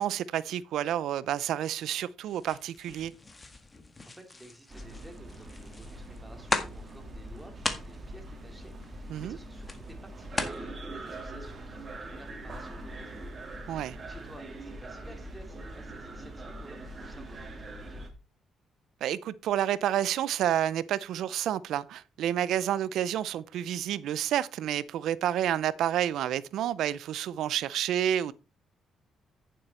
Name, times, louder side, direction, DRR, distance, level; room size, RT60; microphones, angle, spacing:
voice 1, 0.0-3.1 9.1-9.4 13.7-14.0 19.0-28.3, right 11 dB, 80° right, 0.6 m, -29 dB
sound 1, 2.3-10.6, left 3 dB, 25° left, 1.7 m, -38 dB
voice 2, 4.0-13.3 13.7-18.1, right 1 dB, 5° right, 2.9 m, -52 dB
sound 2, 4.7-18.1, right 1 dB, 35° right, 2.5 m, -42 dB
9.0 x 7.6 x 4.2 m
cardioid pair, 90°, 0 cm